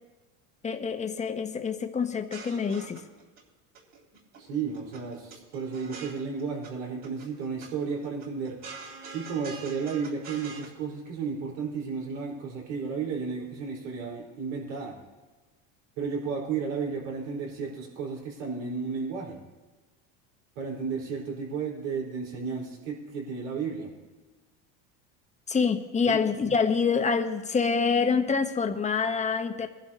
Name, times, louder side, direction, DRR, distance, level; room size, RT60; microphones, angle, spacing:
voice 1, 0.6-3.0 25.5-29.7, left 5 dB, 20° left, 6 dB, 1.1 m, -26 dB
sound 1, 2.1-3.4 3.8-4.4 4.7-6.7 7.0-7.7 8.0-10.7, right 4 dB, 50° right, 4.1 m, -44 dB
voice 2, 4.4-8.6 9.1-14.9 16.0-19.4 20.5-23.9 26.0-26.2 26.4-26.6, right 5 dB, 85° right, -3 dB, 4.7 m, -33 dB
21.0 x 11.5 x 2.9 m, 1.2 s
supercardioid pair, 110°, 36 cm